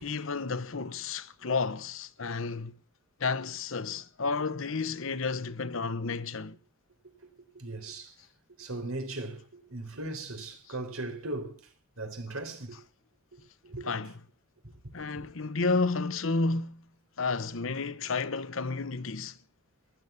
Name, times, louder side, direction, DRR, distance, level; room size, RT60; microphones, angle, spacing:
voice 1, 0.0-2.8 3.2-6.6 13.9-14.1 14.9-16.8 17.2-19.4, left 4 dB, 65° left, 0.9 m, -31 dB
voice 2, 7.5-8.1 8.6-11.6 12.0-12.8 13.3-13.9, right 2 dB, 85° right, 3.9 m, -38 dB
15.5 x 11.0 x 7.0 m
head